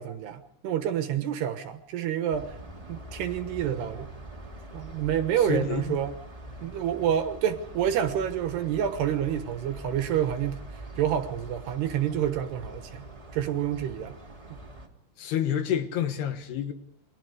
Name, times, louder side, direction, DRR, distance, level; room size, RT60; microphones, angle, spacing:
voice 1, 0.0-2.5 2.9-4.1 4.7-6.1 6.6-10.6 11.0-14.2 14.5-14.6, right 10 dB, 70° right, 3.1 m, -28 dB
sound 1, 2.3-14.9, right 1 dB, 15° right, 1.2 m, -44 dB
voice 2, 5.5-6.0 15.2-16.7, left 9 dB, 70° left, 3.2 m, -28 dB
29.5 x 24.0 x 5.0 m
omnidirectional pair, 5.5 m